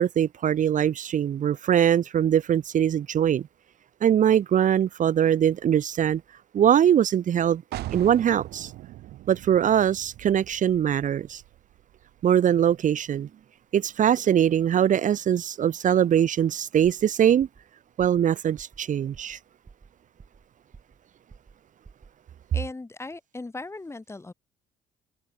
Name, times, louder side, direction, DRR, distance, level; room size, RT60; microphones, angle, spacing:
voice 1, 0.0-3.5 4.0-6.2 6.5-7.6 7.9-8.7 9.3-11.4 12.2-13.3 13.7-17.5 18.0-19.4, right 9 dB, 50° right, 1.7 m, -22 dB
sound 1, 7.7-13.3, right 15 dB, 75° right, 2.4 m, -41 dB
sound 2, 16.8-17.1 17.4-17.7 18.0-18.3 18.6-18.8 19.1-19.4 19.7-20.5 20.7-21.0 21.3-21.6 21.8-22.1, right 5 dB, 25° right, 6.2 m, -50 dB
voice 2, 22.5-24.3, left 3 dB, 15° left, 5.9 m, -38 dB
cardioid pair, 110°, 17 cm